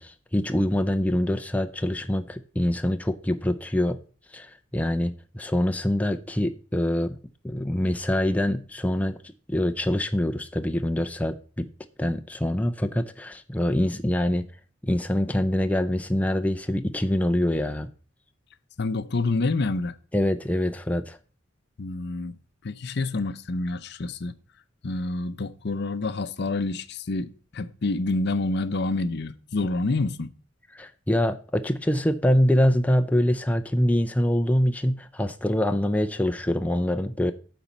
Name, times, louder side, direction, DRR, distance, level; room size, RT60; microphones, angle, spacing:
voice 1, 0.0-4.0 4.3-7.2 7.4-9.2 9.5-11.7 12.0-14.5 14.8-17.9 20.1-21.2 30.7-37.3, left 1 dB, 10° left, 0.4 m, -25 dB
voice 2, 18.8-19.9 21.8-22.4 22.6-24.3 24.8-30.3, left 3 dB, 60° left, 0.6 m, -28 dB
9.2 x 4.3 x 7.0 m
head